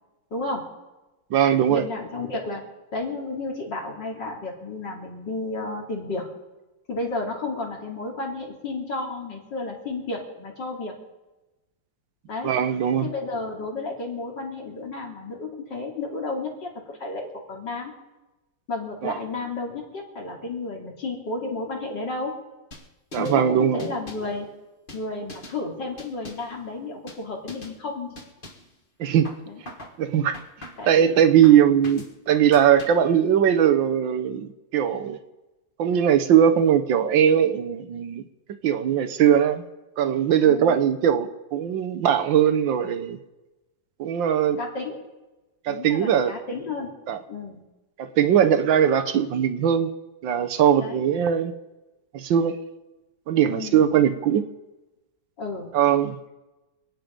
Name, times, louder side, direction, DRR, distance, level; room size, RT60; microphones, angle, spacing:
voice 1, 0.3-0.6 1.7-2.6 2.9-6.3 6.9-10.9 12.3-12.5 13.0-17.9 18.7-22.3 23.2-24.5 24.9-28.2 29.5-29.6 30.8-31.2 40.5-40.8 44.6-45.0 45.7-47.0 47.3-47.6 50.8-51.0 53.5-53.8 55.4-55.7, left 3 dB, 65° left, -2 dB, 3.7 m, -32 dB
voice 2, 1.3-1.9 12.4-13.1 19.0-19.1 23.1-23.9 29.0-29.3 30.0-30.3 30.9-35.2 35.8-38.2 38.6-39.6 40.0-43.2 44.0-44.6 45.7-46.3 47.1-47.2 48.0-49.9 50.2-51.5 52.1-52.6 53.3-54.5 55.7-56.2, right 9 dB, 80° right, 9 dB, 1.7 m, -20 dB
sound 1, 22.7-23.4 23.8-24.3 24.9-25.6 26.0-26.6 27.1-27.2 27.5-27.8 28.2-28.7 29.2-30.0 30.3-30.9 31.4-32.1 32.5-33.1, left 1 dB, 30° left, 1.8 m, -43 dB
26.5 x 9.4 x 5.2 m, 1.1 s
omnidirectional pair, 2.1 m